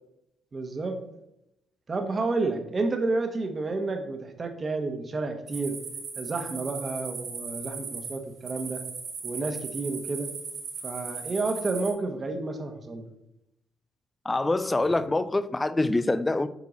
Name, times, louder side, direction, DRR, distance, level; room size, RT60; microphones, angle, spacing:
voice 1, 0.5-1.0 1.9-5.7 6.2-8.8 9.2-10.3 10.8-13.1, right 3 dB, 35° right, 1.3 m, -30 dB
sound 1, 5.5-11.9, right 5 dB, 65° right, 2.5 m, -37 dB
voice 2, 14.3-16.5, left 2 dB, 20° left, 0.5 m, -25 dB
8.3 x 4.5 x 4.1 m
cardioid pair, 90°, 0 cm